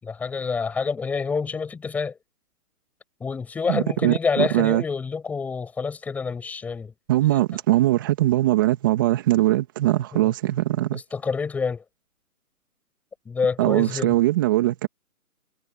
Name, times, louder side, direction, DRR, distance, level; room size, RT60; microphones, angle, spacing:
voice 1, 0.0-2.2 3.2-6.9 10.1-10.3 10.9-11.8 13.3-14.1, left 5 dB, 5° left, 5.6 m, -27 dB
voice 2, 3.7-4.8 7.1-11.0 13.6-14.9, right 15 dB, 15° right, 2.5 m, -21 dB
hypercardioid pair, 170°, 45 cm